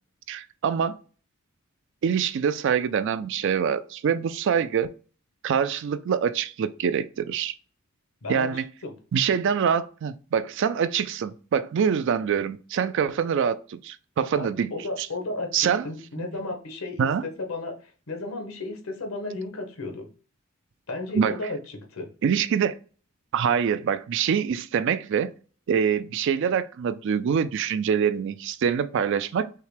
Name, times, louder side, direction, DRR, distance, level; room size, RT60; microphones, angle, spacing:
voice 1, 0.3-1.0 2.0-4.9 5.4-7.5 8.3-8.6 9.1-14.7 15.0-15.1 15.5-15.8 16.2-16.3 17.0-17.2 21.1-21.3 22.2-22.7 23.3-25.3 25.7-29.5, right 7 dB, 60° right, 0.3 m, -25 dB
voice 2, 8.2-8.9 14.3-17.1 17.5-20.1 20.9-22.1, left 2 dB, 80° left, 1.1 m, -34 dB
5.6 x 2.1 x 3.3 m
head